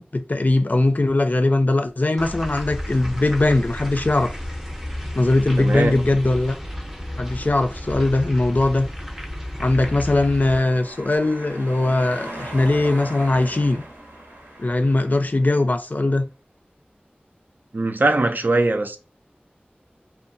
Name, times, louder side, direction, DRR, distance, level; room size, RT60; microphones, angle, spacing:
voice 1, 0.0-4.3 5.1-6.6 7.2-8.9 9.6-13.8 14.6-16.3, left 2 dB, 50° left, 0.4 m, -20 dB
sound 1, 2.2-10.6, left 1 dB, 10° right, 0.6 m, -32 dB
voice 2, 5.6-6.0 17.7-19.0, right 2 dB, 60° right, 0.4 m, -21 dB
sound 2, 9.1-15.7, right 1 dB, 75° right, 0.9 m, -39 dB
2.6 x 2.2 x 2.5 m
wide cardioid pair, 40°, 4 cm